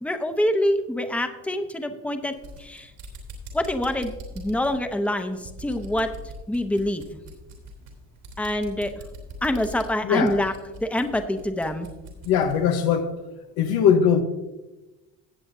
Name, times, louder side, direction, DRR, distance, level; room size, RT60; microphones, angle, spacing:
voice 1, 0.0-2.9 3.5-6.1 6.5-7.2 8.4-8.9 9.4-10.5 10.8-11.9, left 1 dB, 5° left, 0.9 m, -26 dB
sound 1, 2.2-12.6, right 1 dB, 75° right, 3.3 m, -42 dB
voice 2, 10.0-10.4 12.2-13.1 13.6-14.2, left 7 dB, 80° left, 1.1 m, -20 dB
17.0 x 7.7 x 2.7 m
supercardioid pair, 85°, 36 cm